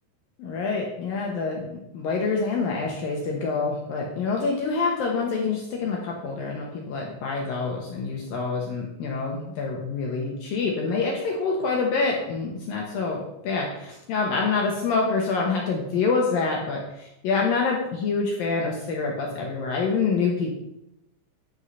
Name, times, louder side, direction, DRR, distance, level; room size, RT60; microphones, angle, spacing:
voice 1, 0.4-20.5, left 4 dB, 65° left, -1 dB, 2.5 m, -26 dB
11.5 x 5.6 x 5.6 m, 0.85 s
omnidirectional pair, 5.2 m